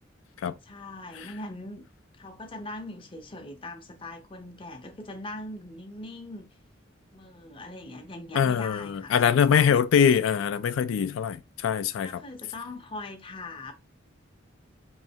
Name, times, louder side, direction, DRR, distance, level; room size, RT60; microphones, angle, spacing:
voice 1, 0.7-1.8 2.2-6.5 7.1-9.8 12.0-13.7, left 2 dB, 25° left, 0.5 m, -41 dB
voice 2, 8.3-12.2, left 7 dB, 90° left, 0.3 m, -23 dB
3.1 x 2.7 x 2.7 m
head